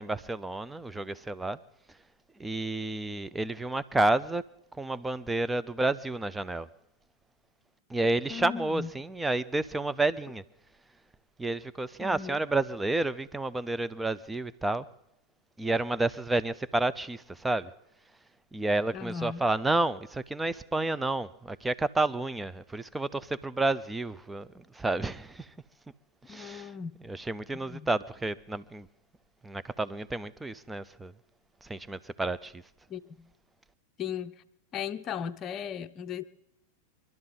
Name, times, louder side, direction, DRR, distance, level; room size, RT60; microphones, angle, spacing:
voice 1, 0.0-1.6 2.4-4.4 4.7-6.7 7.9-10.4 11.4-14.9 15.6-17.7 18.5-25.5 26.3-26.7 27.0-28.9 29.4-31.1 31.6-32.6, right 2 dB, 10° right, 0.5 m, -30 dB
voice 2, 8.3-8.9 12.0-12.4 18.9-19.4 26.3-27.1 27.5-27.9 32.9-33.3 34.0-34.4 34.7-36.2, left 8 dB, 30° left, 0.8 m, -37 dB
24.5 x 12.0 x 3.9 m
figure-of-eight pair, 90°, 0 cm